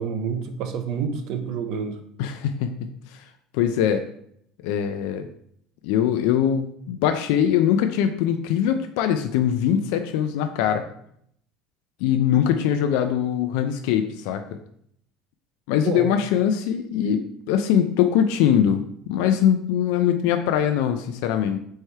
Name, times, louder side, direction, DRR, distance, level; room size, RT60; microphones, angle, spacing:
voice 1, 0.0-2.0 15.8-16.1, right 6 dB, 60° right, 7 dB, 0.6 m, -28 dB
voice 2, 2.2-2.7 3.5-4.0 4.6-5.3 5.8-10.9 12.0-14.4 15.7-18.8 19.1-21.6, left 9 dB, 80° left, 7 dB, 0.3 m, -22 dB
4.3 x 3.2 x 3.4 m, 0.68 s
cardioid pair, 150°, 0 cm